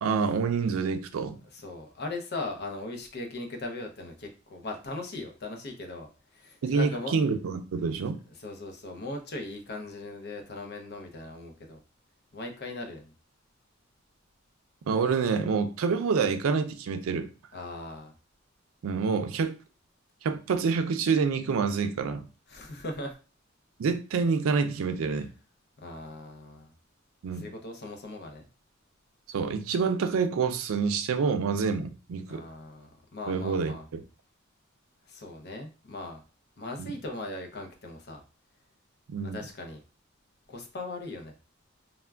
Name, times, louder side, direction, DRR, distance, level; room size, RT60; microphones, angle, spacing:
voice 1, 0.0-1.4 6.6-8.2 14.9-17.3 18.8-19.5 20.2-22.3 23.8-25.3 27.2-27.5 29.3-32.5 33.3-34.0 36.8-36.9 39.1-39.4, right 5 dB, 85° right, 0.4 m, -27 dB
voice 2, 1.5-7.1 8.4-11.8 12.3-13.1 17.5-18.1 22.5-23.2 25.1-25.2 25.8-26.7 27.3-28.5 32.3-33.9 35.1-36.2 36.6-38.2 39.2-39.8 40.5-41.4, left 2 dB, 55° left, 0.6 m, -39 dB
3.4 x 2.1 x 2.2 m
head